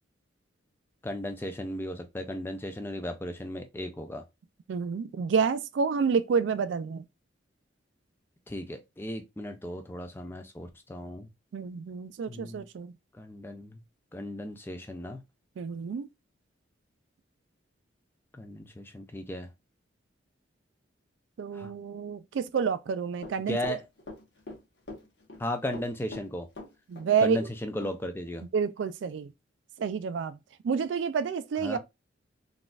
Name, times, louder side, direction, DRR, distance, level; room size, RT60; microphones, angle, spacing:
voice 1, 1.0-4.2 8.5-11.3 12.3-12.7 13.2-13.8 14.1-15.2 18.3-19.5 21.5-21.7 23.5-23.8 25.4-26.5 27.2-28.5 31.6-31.8, left 1 dB, 10° left, 0.4 m, -35 dB
voice 2, 4.7-7.1 11.5-12.9 15.6-16.1 21.4-23.6 26.9-27.4 28.5-29.3 29.8-30.4 30.6-31.8, right 6 dB, 70° right, 0.3 m, -29 dB
Run, 23.2-24.6 24.9-25.4 25.7-27.1 27.4-27.5 27.8-27.9, left 2 dB, 65° left, 1.1 m, -42 dB
3.9 x 2.5 x 2.3 m
head